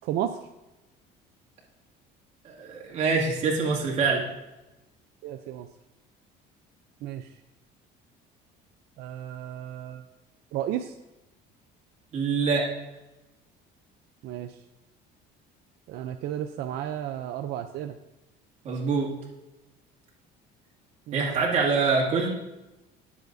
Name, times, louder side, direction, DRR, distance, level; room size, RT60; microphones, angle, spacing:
voice 1, 0.0-0.4 5.2-5.7 7.0-7.3 9.0-10.0 10.5-10.9 14.2-14.5 15.9-18.0 21.1-21.3, right 11 dB, 60° right, 6 dB, 0.5 m, -33 dB
voice 2, 2.4-4.2 12.1-12.6 18.6-19.1 21.1-22.3, right 4 dB, 35° right, -4 dB, 2.3 m, -25 dB
17.0 x 7.4 x 2.7 m, 1.0 s
cardioid pair, 175°, 19 cm